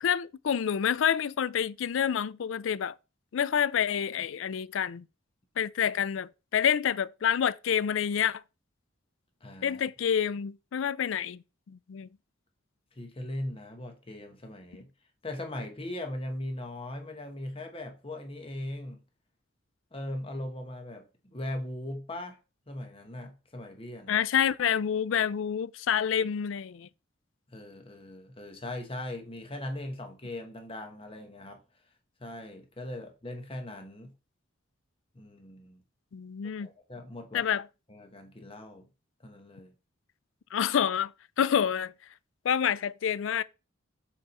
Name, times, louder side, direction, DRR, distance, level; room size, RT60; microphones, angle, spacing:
voice 1, 0.0-2.9 3.3-5.0 5.6-8.4 9.6-12.1 24.1-26.9 36.1-36.7 37.3-37.7 40.5-41.1 41.4-41.9 42.4-43.4, left 8 dB, 75° left, 0.4 m, -28 dB
voice 2, 9.4-9.8 13.0-14.9 15.2-19.0 19.9-21.0 21.3-22.4 22.7-24.2 27.5-31.6 32.2-34.1 35.1-35.8 36.6-37.5 37.9-38.9 39.2-39.7, left 1 dB, 30° left, 1.2 m, -39 dB
6.8 x 3.7 x 4.3 m
head